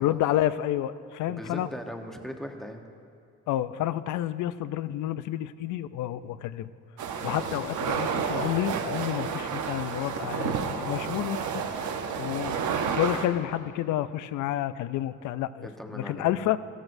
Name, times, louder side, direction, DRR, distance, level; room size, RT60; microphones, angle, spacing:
voice 1, 0.0-1.7 3.5-6.7 7.2-11.6 12.2-12.6 12.9-16.6, left 13 dB, 80° left, 15 dB, 0.5 m, -29 dB
voice 2, 1.3-2.8 7.1-7.3 15.6-16.3, equal, ahead, 3 dB, 1.0 m, -39 dB
sound 1, 7.0-13.3, right 6 dB, 75° right, 1.0 m, -30 dB
15.0 x 13.5 x 2.6 m, 2.4 s
cardioid pair, 90°, 30 cm